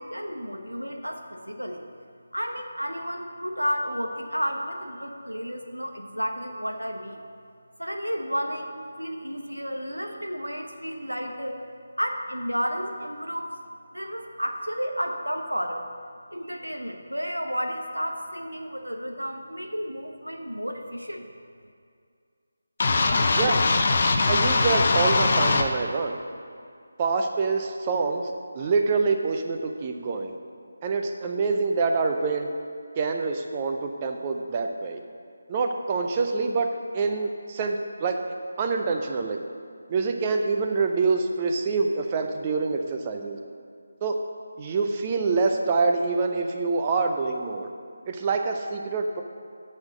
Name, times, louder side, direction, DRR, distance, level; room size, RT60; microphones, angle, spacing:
voice 1, 0.0-1.8 2.3-7.2 7.8-11.6 12.0-13.5 13.9-15.9 16.3-21.3, equal, 85° right, 4 dB, 1.1 m, -32 dB
sound 1, 22.8-25.7, left 3 dB, 40° left, 0.7 m, -21 dB
voice 2, 24.3-26.2 27.0-30.3 30.8-32.5 33.0-35.0 35.5-38.2 38.6-39.4 39.9-43.4 44.0-44.2 44.6-47.7 48.1-49.2, right 4 dB, 20° right, 4 dB, 0.7 m, -26 dB
9.5 x 6.5 x 6.4 m, 2.3 s
figure-of-eight pair, 155°, 0 cm